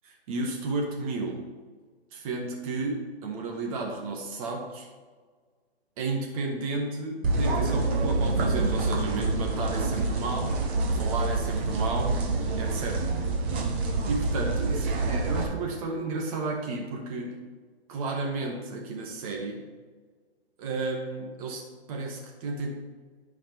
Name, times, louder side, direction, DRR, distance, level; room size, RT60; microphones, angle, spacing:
voice 1, 0.0-1.4 2.1-4.9 6.0-10.6 11.0-12.2 12.6-13.1 14.1-17.3 17.9-19.6 20.6-21.6 21.9-22.8, right 3 dB, 35° right, 0 dB, 1.8 m, -32 dB
sound 1, 7.2-15.4, right 3 dB, 10° right, 0.4 m, -27 dB
13.0 x 5.1 x 4.5 m, 1.5 s
hypercardioid pair, 150°, 33 cm